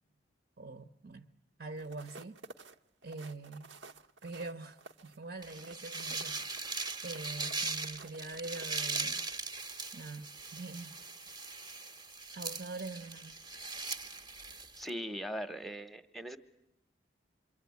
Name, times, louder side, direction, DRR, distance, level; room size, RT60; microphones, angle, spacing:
voice 1, 0.6-1.3 1.6-2.4 3.0-3.7 4.2-6.8 7.0-9.2 9.9-11.0 12.3-13.4, right 3 dB, 60° right, 0.9 m, -44 dB
sound 1, 1.7-9.9 10.4-10.6, right 3 dB, 85° right, 1.0 m, -54 dB
sound 2, 5.4-14.9, right 3 dB, 20° right, 0.9 m, -40 dB
voice 2, 14.8-16.4, equal, ahead, 0.9 m, -40 dB
27.5 x 23.0 x 9.4 m
head